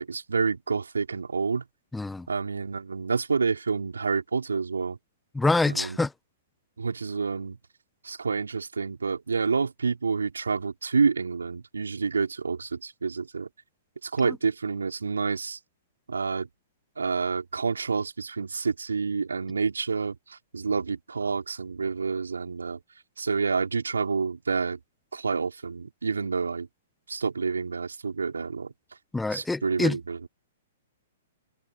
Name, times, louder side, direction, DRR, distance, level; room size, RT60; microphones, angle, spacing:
voice 1, 0.0-1.6 2.3-5.0 5.7-6.1 6.8-7.6 8.0-13.5 14.0-15.6 16.1-16.5 17.0-22.8 23.2-24.8 25.1-26.7 27.1-28.7 29.3-30.3, right 5 dB, 80° right, 3.9 m, -28 dB
voice 2, 1.9-2.3 5.3-6.1 29.1-30.0, left 3 dB, 5° left, 1.4 m, -25 dB
figure-of-eight pair, 115°, 0 cm